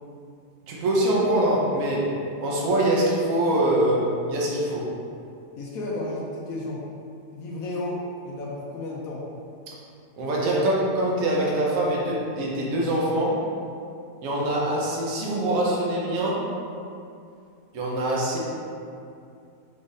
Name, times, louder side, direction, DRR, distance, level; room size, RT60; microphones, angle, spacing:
voice 1, 0.7-2.1 2.4-4.9 10.2-13.4 14.2-16.4 17.7-18.4, right 1 dB, 55° right, -4 dB, 1.1 m, -24 dB
voice 2, 5.6-6.8 7.3-9.3 10.5-10.7, left 2 dB, 70° left, -4 dB, 0.9 m, -33 dB
5.0 x 2.5 x 3.9 m, 2.5 s
omnidirectional pair, 1.8 m